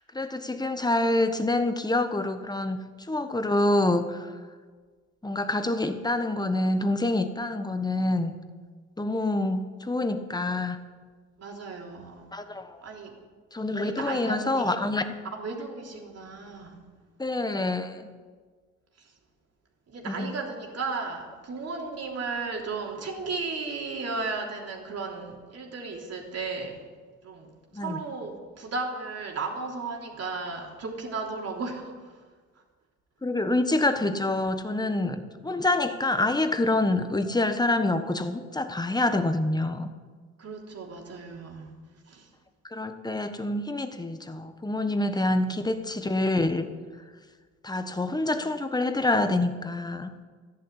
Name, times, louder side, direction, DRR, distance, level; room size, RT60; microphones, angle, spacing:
voice 1, 0.1-2.8 3.1-4.3 5.2-8.3 9.0-10.8 12.3-12.8 13.5-15.1 17.2-18.1 20.1-20.3 27.7-28.0 33.2-39.9 42.7-46.7 47.6-50.1, left 2 dB, 15° left, 8 dB, 1.3 m, -26 dB
voice 2, 11.4-12.3 12.8-13.1 13.7-14.6 15.3-16.8 19.0-19.1 19.9-26.8 27.2-32.2 40.4-41.7 42.1-42.3 45.2-45.6, right 4 dB, 55° right, 0 dB, 3.4 m, -35 dB
13.5 x 11.0 x 8.2 m, 1.5 s
cardioid pair, 90°, 30 cm